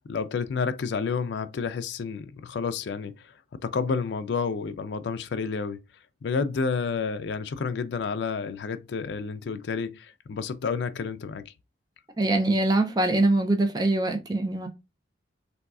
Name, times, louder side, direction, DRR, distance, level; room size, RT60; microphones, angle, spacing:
voice 1, 0.1-3.2 3.5-5.8 6.2-11.5, left 5 dB, 65° left, 0.4 m, -30 dB
voice 2, 12.2-14.7, right 2 dB, 20° right, 0.4 m, -23 dB
3.6 x 2.3 x 2.3 m
head